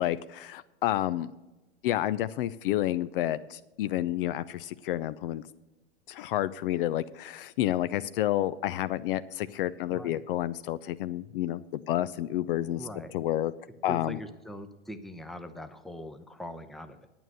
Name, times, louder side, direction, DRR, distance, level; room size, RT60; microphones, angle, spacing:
voice 1, 0.0-1.3 1.8-5.4 6.1-12.9 13.1-13.5 13.8-14.2, left 13 dB, 55° left, 15 dB, 0.5 m, -30 dB
voice 2, 3.9-4.4 9.9-10.2 12.8-13.1 13.9-17.1, equal, ahead, 8 dB, 0.6 m, -42 dB
9.4 x 9.0 x 6.3 m, 1.1 s
hypercardioid pair, 110°, 34 cm